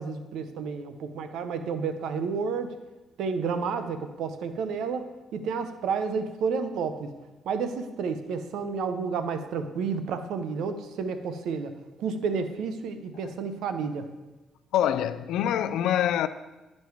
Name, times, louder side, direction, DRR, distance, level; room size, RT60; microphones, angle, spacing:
voice 1, 0.0-2.7 3.2-5.0 5.3-7.1 7.5-11.7 12.0-14.0, right 5 dB, 80° right, 0.7 m, -30 dB
voice 2, 14.7-16.3, left 10 dB, 85° left, 0.4 m, -25 dB
10.5 x 5.4 x 4.6 m
cardioid pair, 90°, 0 cm